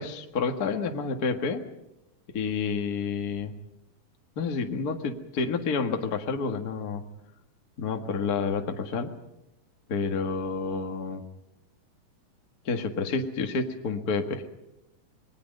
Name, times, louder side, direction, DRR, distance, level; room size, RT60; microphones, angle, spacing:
voice 1, 0.0-1.6 2.3-3.5 4.3-7.0 7.8-9.1 9.9-11.2 12.6-14.5, left 4 dB, 40° left, 4 dB, 1.5 m, -29 dB
27.5 x 21.5 x 5.4 m, 0.90 s
omnidirectional pair, 4.0 m